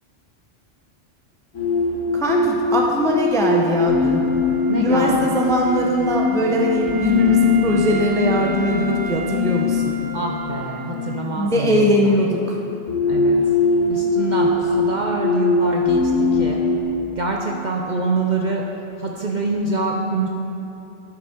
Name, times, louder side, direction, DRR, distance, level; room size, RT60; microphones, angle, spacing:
sound 1, 1.6-16.8, left 4 dB, 90° left, 1.7 m, -21 dB
voice 1, 2.1-4.2 4.7-9.9 11.3-12.6, equal, 5° left, -1 dB, 0.6 m, -21 dB
Wind instrument woodwind instrument, 3.7-11.5, right 7 dB, 70° right, 0.9 m, -36 dB
voice 2, 4.7-5.4 10.1-11.9 13.1-13.4 13.9-16.6 17.2-18.6 19.0-20.3, right 3 dB, 50° right, 0 dB, 0.6 m, -25 dB
11.0 x 6.3 x 4.4 m, 2.9 s
omnidirectional pair, 1.3 m